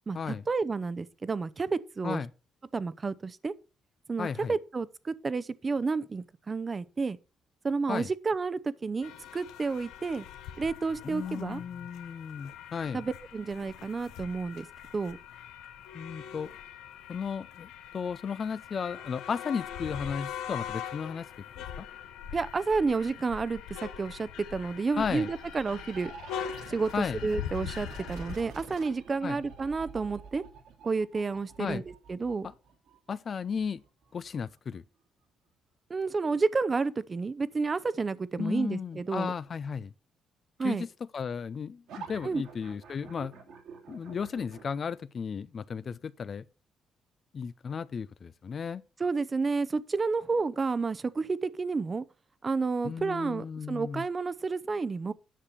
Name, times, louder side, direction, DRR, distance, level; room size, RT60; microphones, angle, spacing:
voice 1, 0.1-2.2 2.7-3.5 4.1-7.2 7.6-10.3 10.6-11.6 12.9-14.6 14.9-15.2 22.3-26.1 26.7-30.4 30.8-31.8 32.1-32.5 35.9-39.3 40.6-40.8 42.2-42.4 49.0-52.0 52.4-55.1, right 4 dB, 30° right, 0.8 m, -30 dB
voice 2, 4.2-4.6 7.9-8.1 11.0-13.0 15.9-16.5 17.1-21.3 21.6-21.9 25.0-25.3 26.9-27.2 29.2-29.4 31.6-31.8 32.4-32.5 33.1-33.8 34.1-34.8 38.4-39.9 40.6-40.9 41.1-43.3 43.9-46.4 47.3-48.8 52.8-54.1, left 6 dB, 45° left, 0.6 m, -34 dB
sound 1, 9.0-28.4, left 9 dB, 90° left, 1.1 m, -42 dB
sound 2, 25.1-34.5 41.9-44.8, right 5 dB, 85° right, 3.0 m, -48 dB
10.0 x 6.7 x 5.7 m
cardioid pair, 90°, 0 cm